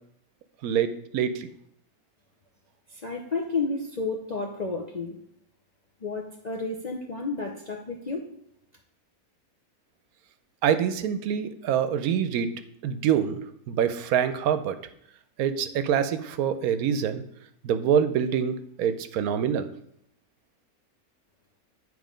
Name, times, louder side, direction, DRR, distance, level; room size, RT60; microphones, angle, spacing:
voice 1, 0.6-1.5 10.6-12.5 12.8-13.4 13.7-14.8 15.4-17.2 17.6-19.7, right 8 dB, 80° right, 11 dB, 1.1 m, -25 dB
voice 2, 2.9-5.2 6.0-8.3, left 3 dB, 50° left, 0 dB, 0.5 m, -31 dB
9.3 x 3.3 x 5.0 m, 0.69 s
omnidirectional pair, 1.5 m